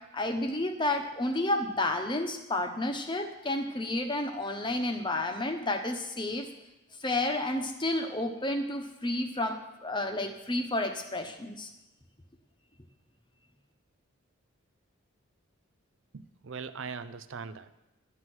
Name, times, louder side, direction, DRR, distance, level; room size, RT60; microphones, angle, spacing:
voice 1, 0.1-6.5 7.0-11.7, left 1 dB, 20° left, 5 dB, 1.0 m, -31 dB
voice 2, 16.1-17.7, right 5 dB, 60° right, 12 dB, 0.5 m, -40 dB
11.0 x 9.7 x 6.2 m, 0.97 s
head